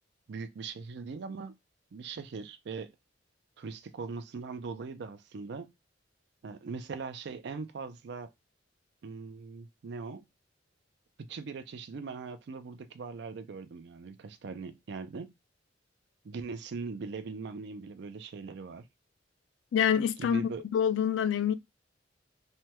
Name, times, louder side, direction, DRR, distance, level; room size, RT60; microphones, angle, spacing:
voice 1, 0.3-1.5 1.9-2.9 3.6-5.7 6.4-8.3 9.0-10.2 11.2-15.3 16.2-18.8 20.2-20.6, right 4 dB, 65° right, 0.4 m, -40 dB
voice 2, 19.7-21.5, left 8 dB, 80° left, 0.3 m, -27 dB
3.3 x 2.2 x 2.9 m
head